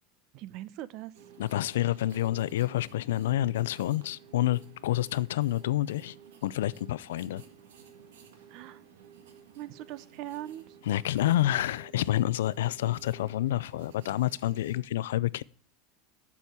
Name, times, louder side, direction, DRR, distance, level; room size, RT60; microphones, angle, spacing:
voice 1, 0.3-1.1 8.5-8.8 9.6-10.6, right 13 dB, 55° right, 0.7 m, -40 dB
sound 1, 1.1-14.8, right 7 dB, 85° right, 1.6 m, -54 dB
voice 2, 1.4-6.1 6.4-7.4 10.8-15.4, left 14 dB, 85° left, 0.4 m, -28 dB
7.3 x 7.0 x 8.0 m
supercardioid pair, 110°, 0 cm